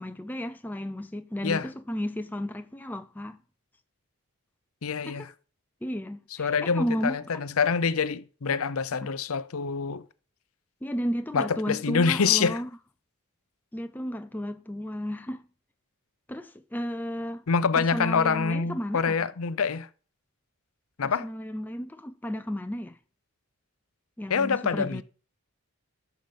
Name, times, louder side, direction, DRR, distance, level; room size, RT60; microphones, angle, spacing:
voice 1, 0.0-3.4 5.0-5.2 5.8-7.2 9.0-9.1 10.8-12.7 13.7-15.4 16.3-17.4 17.8-19.2 21.2-23.0 24.2-25.0, equal, 10° left, 0.4 m, -33 dB
voice 2, 4.8-5.3 6.4-10.0 11.3-12.6 17.5-19.9 21.0-21.3 24.3-25.0, left 5 dB, 70° left, 0.6 m, -26 dB
11.5 x 6.9 x 5.2 m
head